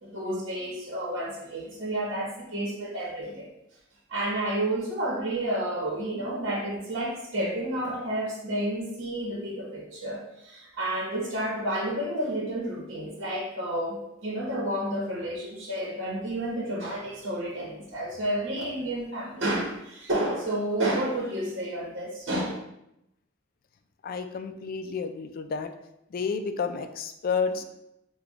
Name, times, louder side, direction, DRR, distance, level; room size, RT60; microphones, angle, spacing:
voice 1, 0.0-3.5 4.1-22.6, right 1 dB, 65° right, -4 dB, 1.1 m, -30 dB
voice 2, 24.0-25.7 26.1-27.6, left 5 dB, 45° left, 7 dB, 0.3 m, -30 dB
6.8 x 2.3 x 2.4 m, 0.84 s
head